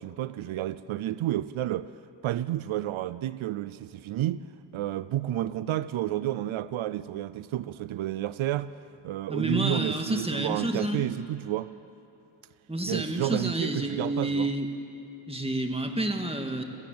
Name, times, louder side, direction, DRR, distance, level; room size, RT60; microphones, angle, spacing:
voice 1, 0.0-1.9 2.2-4.4 4.7-8.8 9.0-11.7 12.8-14.5, right 13 dB, 85° right, 0.5 m, -30 dB
voice 2, 9.3-11.0 12.7-14.7 15.3-16.6, right 1 dB, 10° right, 2.0 m, -29 dB
22.5 x 16.0 x 7.7 m
cardioid pair, 70°, 47 cm